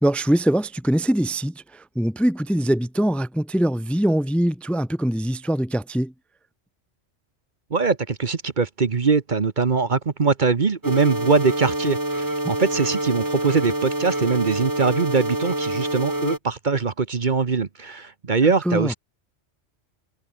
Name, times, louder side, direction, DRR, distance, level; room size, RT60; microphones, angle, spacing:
voice 1, 0.0-6.1 18.4-18.9, right 1 dB, ahead, 0.8 m, -23 dB
voice 2, 7.7-18.9, right 4 dB, 45° right, 1.2 m, -22 dB
sound 1, 10.8-16.4, right 1 dB, 15° right, 2.0 m, -26 dB
omnidirectional pair, 1.2 m